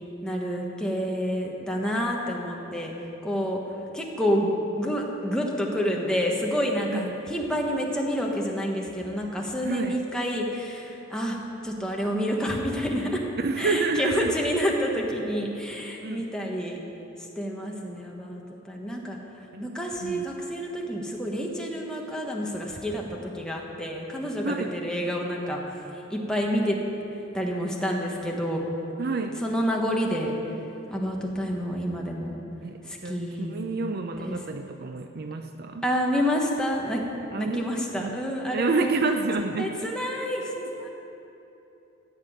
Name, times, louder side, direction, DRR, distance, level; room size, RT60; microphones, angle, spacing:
voice 1, 0.2-2.9 3.2-3.6 3.9-11.4 11.6-13.2 13.6-16.8 17.4-19.2 19.6-23.0 23.3-25.6 26.1-26.8 27.3-28.6 29.4-30.3 30.9-32.4 32.8-33.6 34.2-34.4 35.8-37.0 37.4-38.9 39.6-40.9, equal, 5° left, -1 dB, 1.3 m, -28 dB
voice 2, 9.6-10.0 13.4-14.3 16.0-16.2 19.5-19.7 20.0-20.3 24.4-24.8 29.0-29.4 32.6-35.9 37.3-38.2 38.5-39.9, right 3 dB, 50° right, 6 dB, 0.6 m, -29 dB
15.0 x 6.1 x 8.9 m, 3.0 s
head